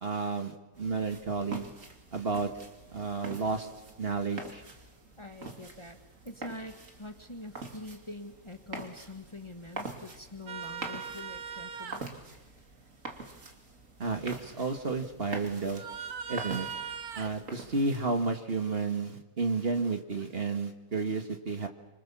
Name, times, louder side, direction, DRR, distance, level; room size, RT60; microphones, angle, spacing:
voice 1, 0.0-1.7 2.1-2.5 2.9-3.7 4.0-4.6 14.0-15.8 16.3-16.7 17.2-21.7, right 4 dB, 40° right, 6 dB, 1.8 m, -31 dB
sound 1, 0.7-18.0, right 3 dB, 60° right, 3.0 m, -45 dB
voice 2, 5.2-6.0 6.2-12.1, left 2 dB, 20° left, 6 dB, 1.5 m, -45 dB
sound 2, 10.5-12.0 15.7-17.3 20.2-20.3, right 7 dB, 85° right, 1.7 m, -39 dB
26.0 x 25.5 x 7.3 m, 1.0 s
omnidirectional pair, 1.5 m